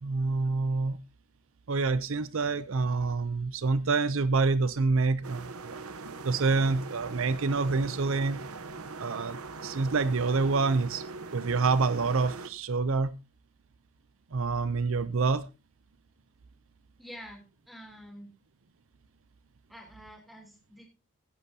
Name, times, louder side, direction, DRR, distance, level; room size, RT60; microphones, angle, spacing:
voice 1, 0.0-1.0 1.7-5.8 6.2-8.4 9.0-11.0 11.3-13.1 14.3-15.5, right 4 dB, 65° right, 14 dB, 0.6 m, -27 dB
sound 1, 5.2-12.5, right 3 dB, 80° right, 1.0 m, -41 dB
voice 2, 17.0-18.3 19.7-20.8, equal, ahead, 1 dB, 3.2 m, -48 dB
16.0 x 10.5 x 2.8 m, 0.28 s
head